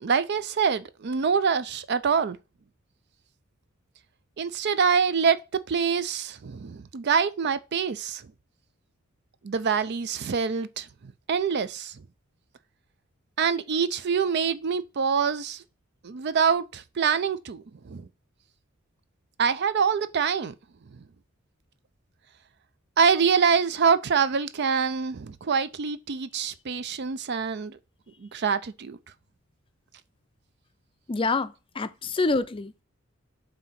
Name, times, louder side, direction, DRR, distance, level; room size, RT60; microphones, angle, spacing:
voice 1, 0.0-2.4 4.4-5.4 5.7-8.2 9.4-11.9 13.4-15.6 16.0-18.1 19.4-20.5 20.9-21.0 23.0-27.8 28.2-29.0, right 6 dB, 55° right, 0.5 m, -25 dB
voice 2, 31.1-32.8, left 3 dB, 25° left, 0.4 m, -27 dB
7.7 x 2.8 x 5.8 m
head